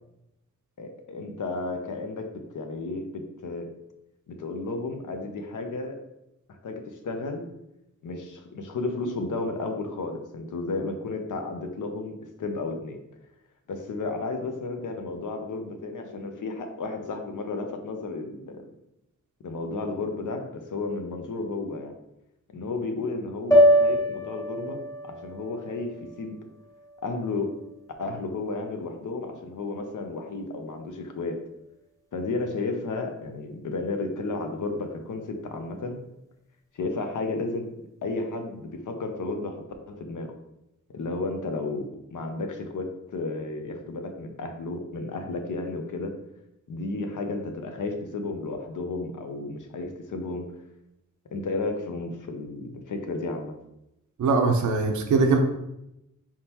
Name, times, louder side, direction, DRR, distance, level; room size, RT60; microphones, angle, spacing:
voice 1, 0.8-2.3 2.5-3.7 4.3-6.0 6.5-7.4 8.0-13.0 13.7-18.6 19.4-21.9 22.5-26.4 27.0-27.5 28.0-31.3 32.1-36.0 36.7-37.6 38.0-40.3 40.9-46.1 46.7-50.4 51.3-53.5, left 3 dB, 75° left, 4 dB, 0.7 m, -33 dB
sound 1, 23.5-27.8, equal, 10° left, 0.4 m, -24 dB
voice 2, 54.2-55.4, right 4 dB, 70° right, 4 dB, 0.6 m, -21 dB
4.3 x 3.6 x 2.9 m, 0.87 s
wide cardioid pair, 130°, 31 cm